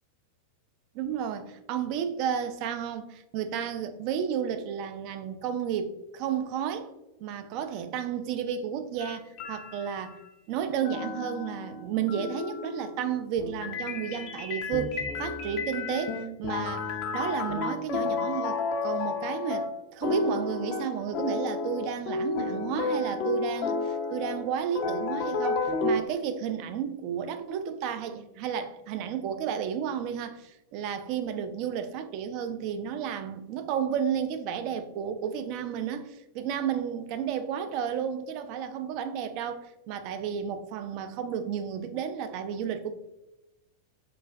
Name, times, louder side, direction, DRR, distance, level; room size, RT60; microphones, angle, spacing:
voice 1, 0.9-6.9 7.2-10.2 10.5-42.9, right 8 dB, 45° right, 0.3 m, -32 dB
sound 1, 9.0-10.2 10.8-25.9, left 4 dB, 40° left, 0.4 m, -31 dB
3.9 x 2.3 x 2.2 m
figure-of-eight pair, 90°, 0 cm